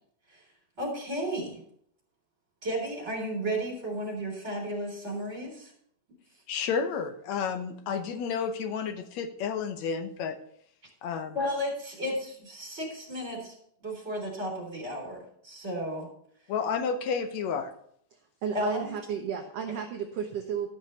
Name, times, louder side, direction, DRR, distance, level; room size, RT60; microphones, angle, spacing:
voice 1, 0.8-1.6 2.6-5.7 11.3-13.5 13.8-16.1 18.5-18.9, equal, 20° right, -1 dB, 3.8 m, -33 dB
voice 2, 6.5-10.4 11.0-11.4 16.5-17.7, left 6 dB, 70° left, 8 dB, 1.9 m, -31 dB
voice 3, 18.1-20.7, right 8 dB, 65° right, 3 dB, 1.6 m, -33 dB
12.5 x 6.3 x 5.5 m, 0.65 s
omnidirectional pair, 3.8 m